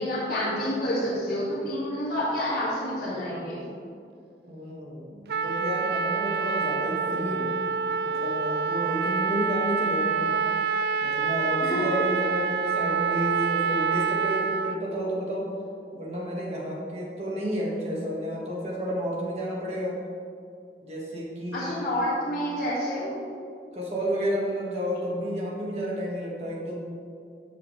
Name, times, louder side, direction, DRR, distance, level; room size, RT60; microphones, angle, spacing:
voice 1, 0.0-3.7 11.7-11.8 21.5-23.1, left 1 dB, 55° left, -11 dB, 2.4 m, -28 dB
voice 2, 4.5-7.5 8.0-10.4 11.0-15.5 15.9-20.0 20.8-21.9 23.7-26.8, equal, 35° right, -4 dB, 1.9 m, -31 dB
Trumpet, 5.3-14.8, right 6 dB, 60° right, 0.3 m, -27 dB
13.5 x 6.5 x 3.4 m, 2.4 s
head